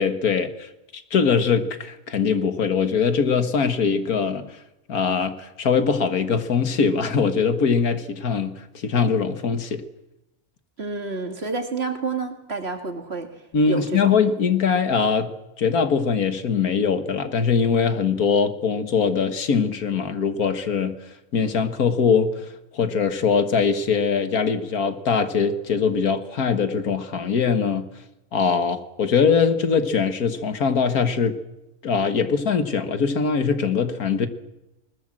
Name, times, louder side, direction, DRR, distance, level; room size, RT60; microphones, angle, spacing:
voice 1, 0.0-4.6 4.9-9.8 13.5-15.3 15.6-21.0 21.3-22.3 22.7-27.9 28.3-31.4 31.8-34.3, left 6 dB, 75° left, 10 dB, 2.0 m, -22 dB
voice 2, 10.8-13.3 13.7-14.1, right 3 dB, 45° right, 6 dB, 2.4 m, -29 dB
21.0 x 20.0 x 7.6 m, 0.97 s
omnidirectional pair, 1.6 m